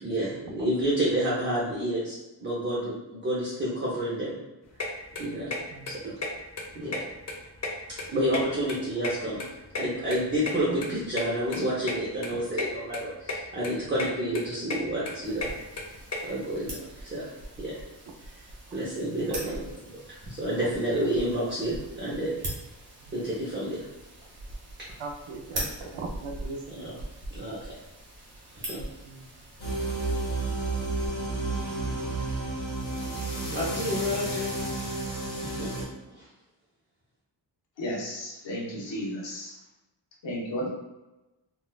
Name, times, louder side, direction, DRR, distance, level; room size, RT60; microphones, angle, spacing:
voice 1, 0.0-2.2 2.4-4.4 5.2-5.5 5.9-6.1 6.7-7.0 8.1-9.4 9.8-15.5 16.3-16.7 17.0-17.3 17.6-17.8 18.7-20.0 20.2-22.3 23.1-23.9 26.7-26.9 27.3-27.8 28.6-28.8 32.1-32.4 33.2-34.7 35.4-35.9 36.1-36.3, right 1 dB, 25° right, -7 dB, 0.6 m, -30 dB
sound 1, 4.8-4.9 5.1-5.6 5.9-6.0 6.2-6.3 6.5-7.3 7.6-8.8 9.0-10.5 10.8-10.9 11.2-11.3 11.5-11.6 11.9-12.0 12.2-12.7 12.9-13.4 13.6-14.1 14.3-16.2, left 3 dB, 40° left, 0.5 m, -32 dB
voice 2, 5.7-6.1 10.7-10.8 19.2-19.7 20.9-21.1 23.1-23.2 25.0-26.9 29.0-29.4, right 3 dB, 90° right, 1 dB, 0.6 m, -39 dB
sound 2, 15.2-31.1, right 1 dB, 60° right, 1.2 m, -42 dB
sound 3, 29.6-35.8, right 2 dB, 25° left, 1.2 m, -31 dB
voice 3, 37.8-39.5 40.2-40.7, equal, 80° left, -3 dB, 1.0 m, -33 dB
4.0 x 2.3 x 2.2 m, 1.0 s
wide cardioid pair, 170°, 44 cm